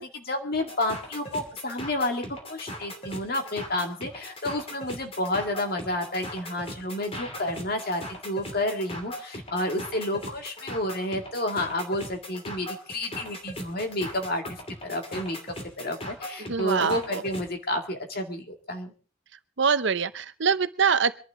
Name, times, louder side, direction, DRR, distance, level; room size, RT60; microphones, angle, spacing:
voice 1, 0.0-14.4 14.8-15.4 15.8-18.9, left 1 dB, 45° left, 4 dB, 2.2 m, -30 dB
sound 1, 0.5-17.5, left 1 dB, 30° left, 2.6 m, -39 dB
voice 2, 16.5-17.2 19.6-21.2, right 6 dB, 60° right, 14 dB, 0.7 m, -24 dB
24.5 x 11.5 x 3.7 m, 0.38 s
head